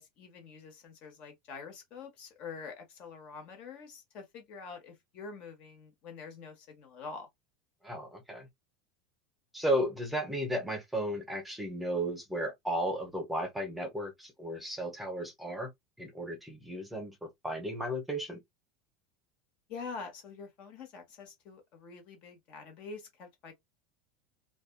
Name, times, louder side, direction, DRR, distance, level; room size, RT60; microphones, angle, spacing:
voice 1, 0.0-7.3 19.7-23.5, left 5 dB, 50° left, 1.2 m, -46 dB
voice 2, 7.8-8.5 9.5-15.7 16.0-18.4, equal, 5° right, 0.8 m, -34 dB
2.5 x 2.3 x 2.2 m
supercardioid pair, 130°, 3 cm